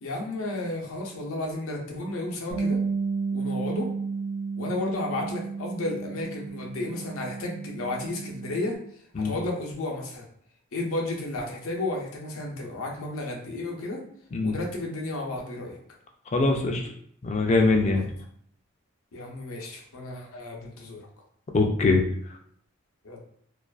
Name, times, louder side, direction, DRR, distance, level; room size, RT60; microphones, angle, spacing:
voice 1, 0.0-2.8 3.3-3.9 4.6-8.8 9.2-10.2 10.7-14.0 14.4-15.8 17.9-18.1 19.1-21.1 23.0-23.2, left 2 dB, 90° left, 0 dB, 0.6 m, -33 dB
Bass guitar, 2.5-8.8, right 4 dB, 30° right, 0.5 m, -32 dB
voice 2, 16.3-16.8 17.2-18.0 21.5-22.0, left 3 dB, 30° left, 3 dB, 0.3 m, -22 dB
2.4 x 2.3 x 2.3 m, 0.64 s
head